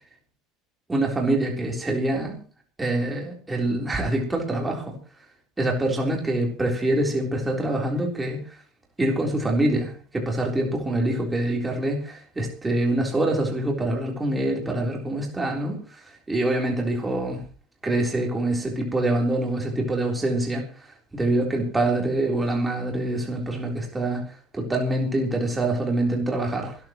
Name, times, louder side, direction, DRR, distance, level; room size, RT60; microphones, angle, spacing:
voice 1, 0.9-2.4 2.8-5.0 5.6-8.4 9.0-16.0 16.3-17.4 17.8-20.6 21.1-24.2 24.5-26.8, right 1 dB, 10° right, 0 dB, 3.7 m, -25 dB
26.0 x 13.0 x 3.1 m, 0.37 s
cardioid pair, 175°, 0 cm